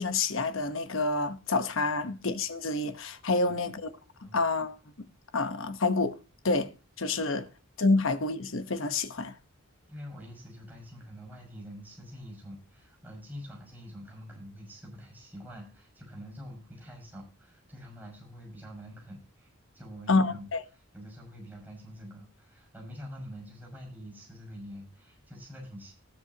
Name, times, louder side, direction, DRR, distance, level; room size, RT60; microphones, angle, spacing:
voice 1, 0.0-3.9 4.3-5.1 5.3-6.2 6.4-6.7 7.0-7.5 7.8-9.3 20.1-20.6, left 3 dB, 60° left, 1.1 m, -28 dB
voice 2, 9.9-19.5 19.7-20.5 20.7-25.9, equal, 10° right, 5.9 m, -46 dB
19.0 x 7.5 x 2.9 m
head